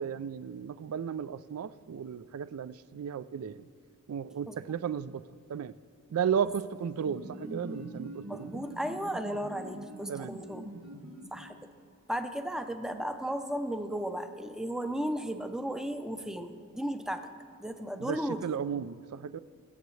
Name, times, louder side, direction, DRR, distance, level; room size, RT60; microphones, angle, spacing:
voice 1, 0.0-3.7 4.1-5.2 5.5-5.7 6.1-8.5 10.1-10.3 18.0-19.4, right 7 dB, 70° right, 16 dB, 0.3 m, -34 dB
sound 1, 6.8-11.7, right 1 dB, 85° right, 1.2 m, -44 dB
voice 2, 8.3-10.7 11.3-11.6 12.1-17.3 17.6-18.5, equal, 5° right, 8 dB, 0.5 m, -35 dB
23.0 x 7.8 x 3.2 m, 2.3 s
head